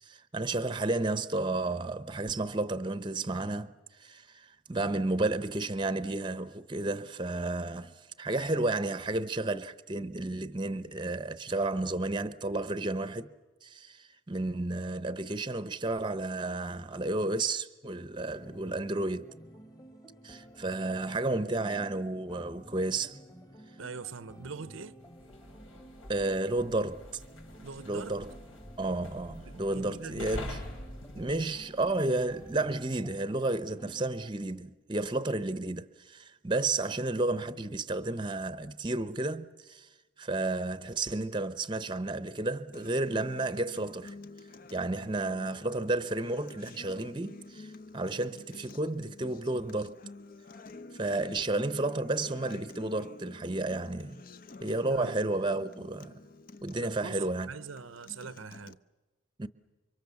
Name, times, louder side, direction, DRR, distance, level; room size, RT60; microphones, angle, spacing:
voice 1, 0.0-3.7 4.0-13.3 13.6-19.3 20.2-23.2 26.1-27.2 27.9-28.2 28.8-30.6 31.1-39.9 40.2-44.1 44.7-50.0 50.9-54.2 54.6-56.1 56.6-57.5 59.4-59.5, right 2 dB, 20° right, 0.8 m, -32 dB
sound 1, 18.3-34.3, equal, 15° left, 1.5 m, -52 dB
voice 2, 23.8-25.0 27.6-28.2 29.5-30.3 54.9-55.3 56.8-58.8, right 5 dB, 75° right, 0.8 m, -42 dB
sound 2, 25.0-32.9, left 1 dB, 75° left, 6.7 m, -46 dB
Acoustic guitar, 42.7-58.7, left 3 dB, 45° left, 0.8 m, -49 dB
29.5 x 25.5 x 7.1 m
head